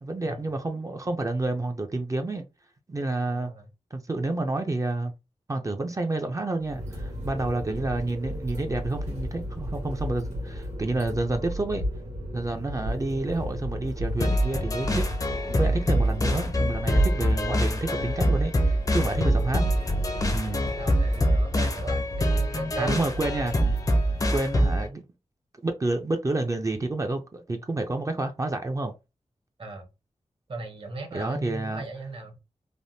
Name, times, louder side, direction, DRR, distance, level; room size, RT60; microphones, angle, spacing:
voice 1, 0.0-2.5 2.9-3.5 3.9-5.1 5.5-11.8 12.3-15.1 15.5-19.6 20.3-20.6 22.8-23.5 24.3-25.0 25.6-28.9 31.1-31.8, right 2 dB, 30° right, 0.4 m, -29 dB
voice 2, 3.3-3.7 20.6-22.9 29.6-29.9 30.5-32.4, right 3 dB, 50° right, 0.9 m, -37 dB
sound 1, 6.6-24.2, equal, 75° right, 1.2 m, -33 dB
sound 2, 14.2-24.9, equal, 30° left, 0.5 m, -25 dB
3.3 x 2.1 x 2.6 m
wide cardioid pair, 95°, 12 cm